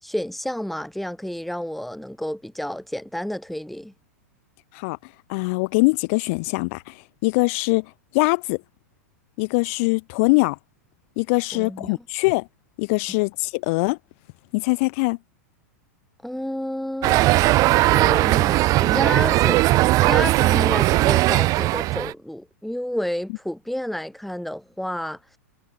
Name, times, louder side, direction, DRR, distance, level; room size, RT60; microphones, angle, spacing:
voice 1, 0.0-3.9 11.5-11.9 16.2-17.2 17.7-19.6 20.0-25.2, equal, ahead, 4.4 m, -30 dB
voice 2, 5.3-8.6 9.4-10.6 11.2-12.5 12.8-14.0 14.5-15.2, left 29 dB, 55° left, 2.9 m, -22 dB
sound 1, 17.0-22.1, right 18 dB, 40° right, 2.0 m, -18 dB
hypercardioid pair, 105°, 9 cm